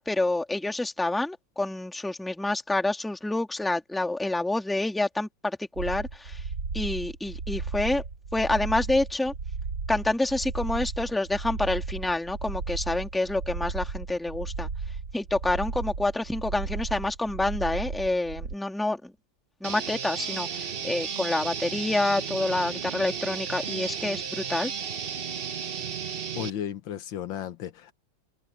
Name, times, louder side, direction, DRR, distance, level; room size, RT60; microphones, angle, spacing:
voice 1, 0.0-6.4 6.7-8.0 8.3-9.3 9.9-14.7 15.1-19.1 19.6-24.7, left 2 dB, ahead, 1.7 m, -28 dB
sound 1, 5.8-18.5, right 4 dB, 65° right, 2.7 m, -35 dB
sound 2, 19.6-26.5, right 7 dB, 45° right, 0.7 m, -34 dB
voice 2, 26.4-27.9, left 10 dB, 90° left, 1.8 m, -34 dB
omnidirectional pair, 2.0 m